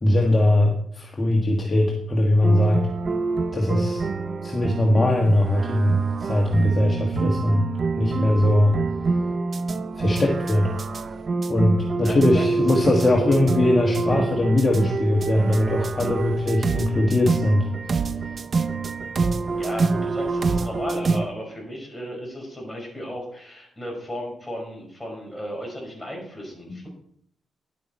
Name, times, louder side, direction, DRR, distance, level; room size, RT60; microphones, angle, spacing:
voice 1, 0.0-2.8 3.5-4.0 4.4-7.7 8.0-8.8 10.0-10.7 11.5-17.7 26.7-26.8, left 1 dB, 30° left, 0 dB, 1.6 m, -20 dB
sound 1, 2.4-21.3, right 4 dB, 45° right, 0.6 m, -26 dB
voice 2, 12.0-12.4 19.6-26.9, equal, 10° left, -1 dB, 5.1 m, -34 dB
11.0 x 8.5 x 4.4 m, 0.66 s
cardioid pair, 90°, 0 cm